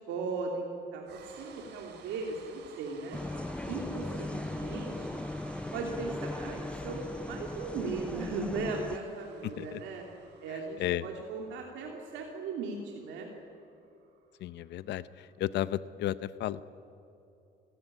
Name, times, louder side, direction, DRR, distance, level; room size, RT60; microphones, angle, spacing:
voice 1, 0.1-3.2 3.7-5.2 5.7-10.0 10.4-13.3, right 4 dB, 90° right, 0 dB, 3.0 m, -37 dB
sound 1, 1.0-15.1, right 6 dB, 70° right, 3.1 m, -55 dB
sound 2, 3.1-9.0, left 2 dB, 5° left, 0.5 m, -38 dB
voice 2, 9.4-9.8 10.8-11.1 14.4-16.6, left 13 dB, 70° left, 16 dB, 0.7 m, -33 dB
28.5 x 15.5 x 10.0 m, 2.7 s
cardioid pair, 145°, 18 cm